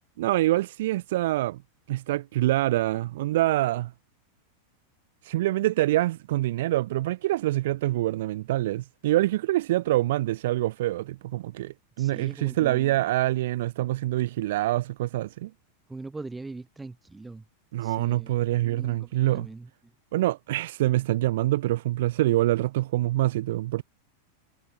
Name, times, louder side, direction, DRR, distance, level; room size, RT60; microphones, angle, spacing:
voice 1, 0.2-1.6 1.9-3.9 5.2-15.5 17.7-19.5 20.1-23.8, right 16 dB, 55° right, 0.9 m, -25 dB
voice 2, 12.0-13.0 15.9-17.4 17.8-19.7, right 3 dB, 10° right, 2.4 m, -42 dB
figure-of-eight pair, 90°, 0 cm